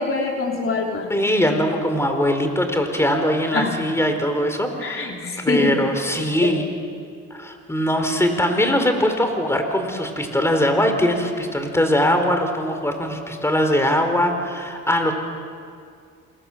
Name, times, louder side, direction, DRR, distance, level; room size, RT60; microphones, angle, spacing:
voice 1, 0.0-1.1 3.5-3.7 4.8-5.8 6.4-6.6, left 4 dB, 45° left, 1 dB, 3.6 m, -24 dB
voice 2, 1.1-5.1 5.4-6.6 7.3-15.1, equal, 10° left, 5 dB, 4.4 m, -21 dB
28.0 x 27.5 x 7.5 m, 2.2 s
cardioid pair, 90°, 30 cm